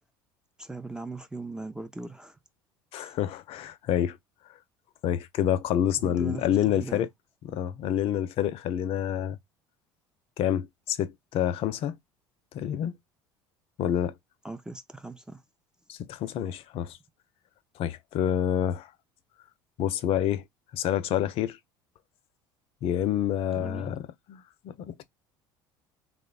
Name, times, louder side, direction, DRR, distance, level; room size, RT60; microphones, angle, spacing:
voice 1, 0.6-2.4 3.0-3.1 6.0-7.1 14.4-15.4 23.5-24.0, right 2 dB, 5° right, 0.4 m, -39 dB
voice 2, 2.9-4.2 5.0-7.1 7.5-9.4 10.4-12.0 12.5-12.9 13.8-14.1 15.9-17.0 17.8-18.9 19.8-20.4 20.7-21.6 22.8-24.0 24.3-25.0, left 10 dB, 55° left, 0.4 m, -28 dB
3.0 x 2.0 x 2.3 m
hypercardioid pair, 70°, 12 cm